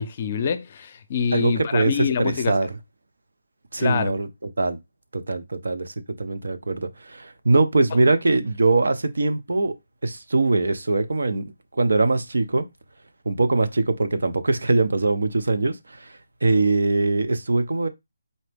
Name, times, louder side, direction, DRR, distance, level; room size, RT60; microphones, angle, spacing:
voice 1, 0.0-2.5 3.8-4.1, left 7 dB, 35° left, 0.6 m, -25 dB
voice 2, 1.3-2.8 3.7-4.3 4.6-4.8 5.1-9.8 10.0-12.7 13.3-17.9, right 3 dB, 80° right, 0.8 m, -22 dB
4.2 x 2.9 x 3.4 m
hypercardioid pair, 165°, 0 cm